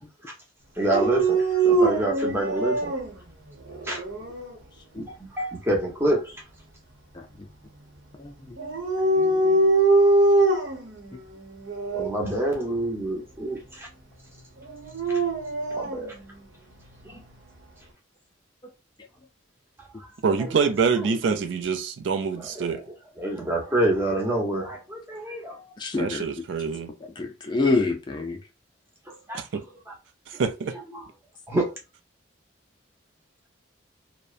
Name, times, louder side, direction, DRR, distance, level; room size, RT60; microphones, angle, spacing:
voice 1, 0.8-1.4 1.6-2.9 3.9-4.0 5.0-6.3 11.9-13.9 15.7-16.1 17.1-17.2 20.4-20.5 21.1-21.2 22.3-22.8 23.2-25.6 29.3-29.6 30.9-31.0 31.5-31.7, right 1 dB, 10° right, 0.7 m, -27 dB
Dog, 0.8-3.1 3.7-4.4 8.6-10.9 11.7-12.1 14.7-16.0, right 2 dB, 85° right, 0.9 m, -22 dB
voice 2, 8.2-8.6 9.5-9.6 25.8-26.3 27.2-28.4, left 3 dB, 25° left, 0.3 m, -27 dB
voice 3, 20.2-22.8 26.0-26.9 29.3-29.6 30.3-30.7, right 5 dB, 70° right, 0.4 m, -25 dB
2.6 x 2.0 x 2.4 m
head